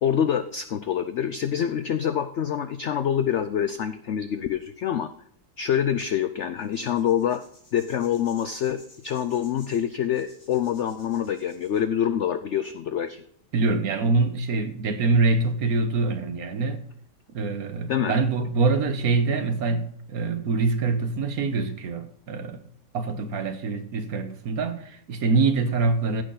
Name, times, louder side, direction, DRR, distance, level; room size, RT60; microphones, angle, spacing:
voice 1, 0.0-5.1 5.6-7.4 7.7-13.2 17.9-18.2, left 9 dB, 75° left, 0.6 m, -26 dB
sound 1, 6.6-11.8, left 1 dB, 30° left, 4.1 m, -53 dB
voice 2, 13.5-16.8 17.3-22.6 22.9-26.2, right 3 dB, 60° right, 1.4 m, -24 dB
15.0 x 6.4 x 3.9 m
omnidirectional pair, 1.8 m